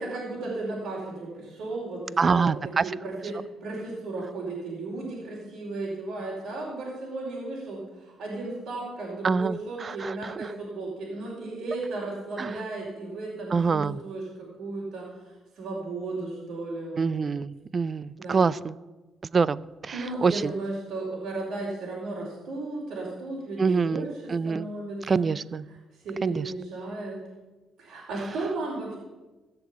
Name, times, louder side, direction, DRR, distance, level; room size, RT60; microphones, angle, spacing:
voice 1, 0.0-17.1 18.2-18.5 19.9-25.3 25.7-27.2 27.8-28.9, right 2 dB, 75° right, -5 dB, 4.8 m, -35 dB
voice 2, 2.2-2.8 9.2-10.5 12.4-12.5 13.5-14.0 17.0-18.7 19.3-20.5 23.6-24.7 25.1-25.6 26.2-26.5, right 5 dB, 40° right, 19 dB, 0.5 m, -26 dB
16.0 x 6.9 x 8.5 m, 1.2 s
cardioid pair, 90°, 0 cm